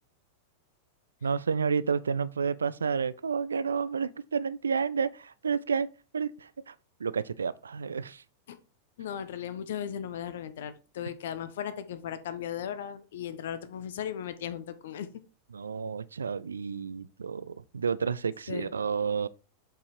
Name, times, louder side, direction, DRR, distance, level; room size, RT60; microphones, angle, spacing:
voice 1, 1.2-5.9 6.1-6.7 7.0-8.2 15.5-19.3, right 6 dB, 70° right, 0.5 m, -30 dB
voice 2, 9.0-15.1 18.5-18.7, left 9 dB, 60° left, 1.0 m, -37 dB
7.5 x 5.6 x 4.4 m
figure-of-eight pair, 90°, 0 cm